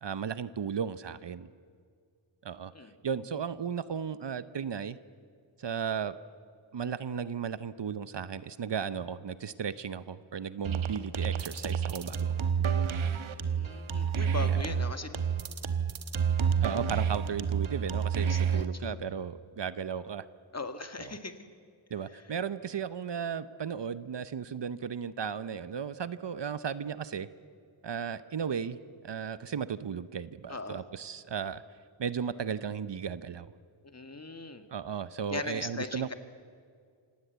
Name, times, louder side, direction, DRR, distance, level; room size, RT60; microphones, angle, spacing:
voice 1, 0.0-1.5 2.4-2.7 3.0-5.0 5.6-6.1 6.7-12.9 16.6-20.3 21.0-21.2 21.9-27.3 27.8-31.6 32.0-33.5 34.7-36.1, right 7 dB, 60° right, 15 dB, 0.8 m, -35 dB
sound 1, 10.6-18.7, right 7 dB, 75° right, 1.2 m, -29 dB
voice 2, 13.4-15.1 18.2-19.0 20.5-21.5 30.5-30.8 33.9-34.7 35.3-36.1, left 3 dB, 30° left, 8 dB, 1.7 m, -39 dB
27.0 x 18.0 x 8.0 m, 2.2 s
wide cardioid pair, 85°, 48 cm